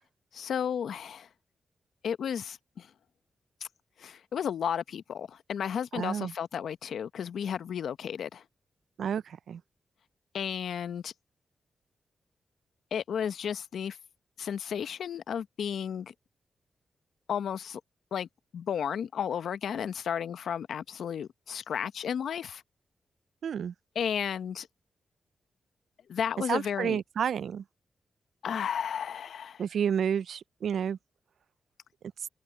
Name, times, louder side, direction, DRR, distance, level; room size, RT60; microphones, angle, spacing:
voice 1, 0.3-1.3 2.0-2.9 4.0-8.4 10.3-11.1 12.9-14.0 14.4-16.1 17.3-17.8 18.1-18.3 18.5-22.6 23.9-24.7 26.1-27.0 28.4-29.6, left 8 dB, 75° left, 0.9 m, -33 dB
voice 2, 5.9-6.3 9.0-9.6 23.4-23.7 26.5-27.6 29.6-31.0, right 8 dB, 75° right, 0.5 m, -30 dB
open air
supercardioid pair, 45°, 0 cm